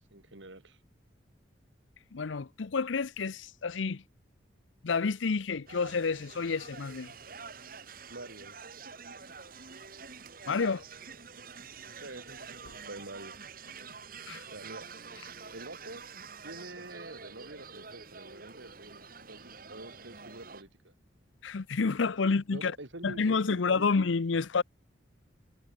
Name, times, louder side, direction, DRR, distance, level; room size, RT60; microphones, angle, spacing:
voice 1, 0.1-0.8 8.1-8.6 12.0-13.4 14.4-14.8 15.5-16.0 16.4-20.9 22.5-23.9, right 2 dB, 75° right, 3.3 m, -47 dB
voice 2, 2.1-4.0 4.8-7.1 10.5-10.8 14.3-14.4 21.4-22.7 23.0-24.6, left 4 dB, 80° left, 0.7 m, -29 dB
sound 1, 5.7-20.6, right 5 dB, 50° right, 2.8 m, -47 dB
sound 2, 12.3-13.5, left 1 dB, 65° left, 5.9 m, -62 dB
head